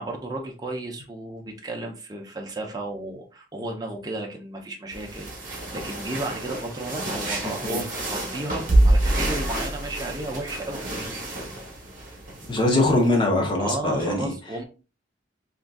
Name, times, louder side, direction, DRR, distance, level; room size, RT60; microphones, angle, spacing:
voice 1, 0.0-10.8 13.6-14.6, right 2 dB, 20° right, 1 dB, 0.5 m, -33 dB
sound 1, 4.9-13.1, right 1 dB, 45° right, 0.9 m, -27 dB
voice 2, 12.5-14.3, left 2 dB, 25° left, 0 dB, 0.6 m, -22 dB
3.6 x 2.6 x 2.2 m, 0.33 s
head